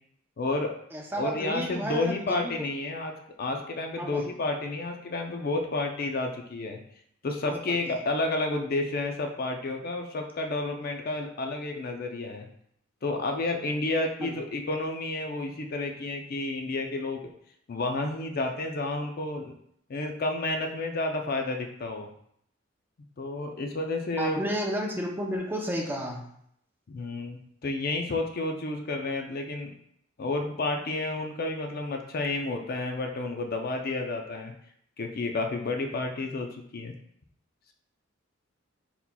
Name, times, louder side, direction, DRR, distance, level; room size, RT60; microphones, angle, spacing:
voice 1, 0.4-0.8 1.2-3.1 3.4-6.8 7.2-12.5 13.0-17.3 17.7-19.5 19.9-22.1 23.2-24.4 26.9-29.7 30.2-34.5 35.0-36.9, left 2 dB, 50° left, 4 dB, 0.5 m, -31 dB
voice 2, 0.9-2.5 4.0-4.3 7.4-7.9 14.2-14.4 24.2-26.3, equal, 10° right, 0 dB, 0.6 m, -32 dB
4.2 x 4.1 x 2.2 m, 0.69 s
head